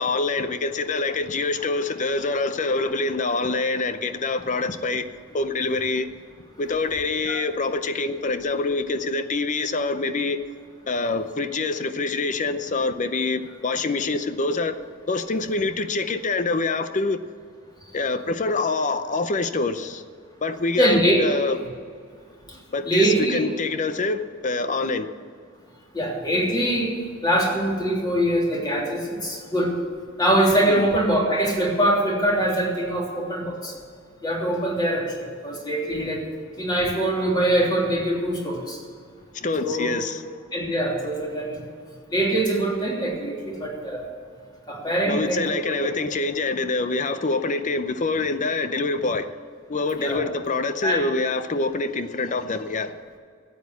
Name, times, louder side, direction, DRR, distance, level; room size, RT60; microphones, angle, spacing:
voice 1, 0.0-5.1 5.3-6.1 6.6-10.4 10.9-14.8 15.1-17.2 17.9-20.0 20.4-21.6 22.7-25.1 30.7-30.9 39.3-40.4 45.1-49.3 49.7-52.9, left 3 dB, 35° left, 0.6 m, -25 dB
voice 2, 20.8-21.2 22.5-22.6 22.8-23.4 25.9-26.9 27.2-29.7 30.2-33.7 34.2-35.0 35.4-36.2 36.6-38.8 39.6-39.9 40.5-41.6 42.1-44.1 44.7-45.4 50.0-50.2 50.8-51.0, right 1 dB, 20° left, 3.0 m, -23 dB
12.5 x 8.5 x 8.3 m
head